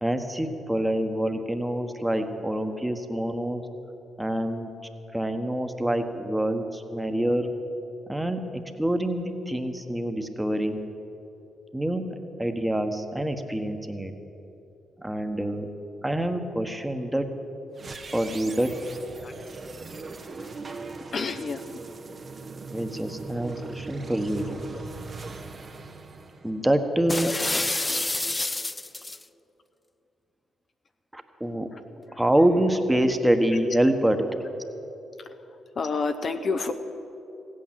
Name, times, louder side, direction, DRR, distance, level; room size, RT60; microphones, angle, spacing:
voice 1, 0.0-3.7 4.2-4.7 5.1-7.5 8.1-10.8 11.7-12.1 12.4-14.1 15.0-15.7 16.0-17.3 18.1-18.7 22.7-24.5 26.4-27.3 31.1-31.7 32.2-34.2, right 1 dB, 10° right, 7 dB, 1.3 m, -26 dB
sound 1, 17.7-27.0, right 4 dB, 45° right, 1.1 m, -40 dB
voice 2, 21.1-21.8 23.9-24.1 24.4-24.8 27.2-27.3 27.9-28.0 32.1-32.2 35.8-36.7, left 4 dB, 50° left, 6 dB, 0.7 m, -30 dB
sound 2, 27.1-29.2, left 2 dB, 20° left, 0.4 m, -28 dB
15.5 x 8.8 x 7.6 m, 3.0 s
hypercardioid pair, 50°, 0 cm